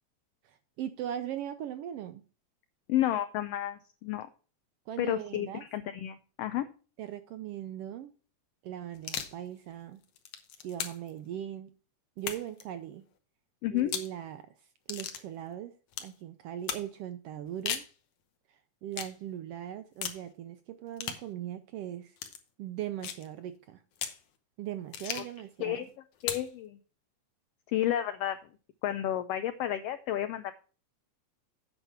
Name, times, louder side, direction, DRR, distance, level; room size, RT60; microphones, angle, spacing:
voice 1, 0.4-2.2 4.9-5.6 7.0-8.1 8.6-10.0 10.6-11.7 12.2-13.0 13.7-14.5 14.9-15.7 16.0-17.8 18.5-22.2 22.6-23.8 24.6-25.9, right 11 dB, 85° right, 1.3 m, -39 dB
voice 2, 2.9-4.3 5.0-6.7 13.6-13.9 25.2-25.3 25.6-25.9 26.2-26.8 27.7-28.4 28.8-30.5, left 12 dB, 85° left, 1.4 m, -31 dB
sound 1, 8.9-9.4 10.0-11.1 12.2-12.6 13.8-14.1 14.9-15.2 15.9-16.1 16.7-16.9 17.5-17.9 18.9-19.1 20.0-20.2 21.0-21.2 22.2-22.4 23.0-23.3 24.0-24.2 24.9-25.4 26.2-26.5, left 8 dB, 65° left, 1.8 m, -37 dB
8.9 x 6.0 x 5.7 m
omnidirectional pair, 3.3 m